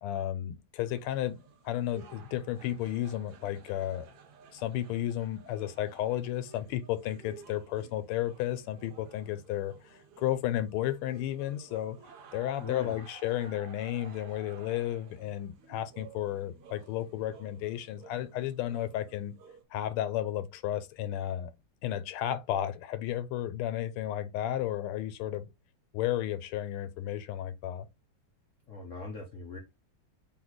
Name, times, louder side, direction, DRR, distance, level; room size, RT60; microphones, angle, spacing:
voice 1, 0.0-4.1 4.5-12.0 12.3-19.3 19.7-21.5 21.8-25.5 25.9-27.9, left 12 dB, 85° left, 1.5 m, -33 dB
sound 1, 0.8-19.6, right 5 dB, 60° right, 1.2 m, -54 dB
voice 2, 12.6-13.0 28.7-29.6, left 4 dB, 65° left, 0.7 m, -41 dB
3.6 x 3.1 x 3.9 m
omnidirectional pair, 2.3 m